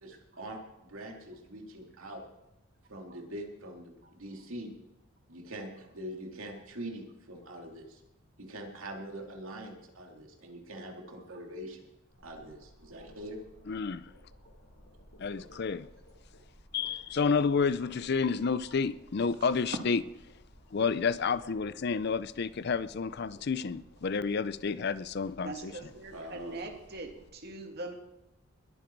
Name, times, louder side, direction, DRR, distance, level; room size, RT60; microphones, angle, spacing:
voice 1, 0.0-2.2 2.9-4.7 5.3-8.0 8.4-11.9 12.2-13.4 15.3-15.7 26.1-26.5, right 1 dB, 75° right, 2.7 m, -43 dB
sound 1, 12.1-27.3, equal, 75° left, 7.0 m, -58 dB
voice 2, 13.7-14.1 15.2-15.9 16.7-20.0 20.7-25.7, left 5 dB, 50° left, 0.5 m, -30 dB
voice 3, 25.4-27.9, right 2 dB, 50° right, 2.2 m, -42 dB
21.0 x 9.2 x 4.6 m
head